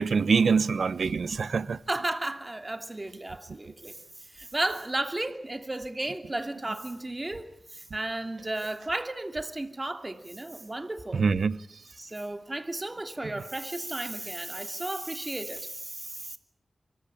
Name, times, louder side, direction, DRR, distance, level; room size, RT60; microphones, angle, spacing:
voice 1, 0.0-1.8 11.1-11.6, right 5 dB, 80° right, 1.0 m, -24 dB
voice 2, 1.9-4.0 4.3-11.2 12.0-16.4, right 2 dB, 25° right, 2.7 m, -34 dB
25.0 x 24.5 x 8.8 m
wide cardioid pair, 80°, 0 cm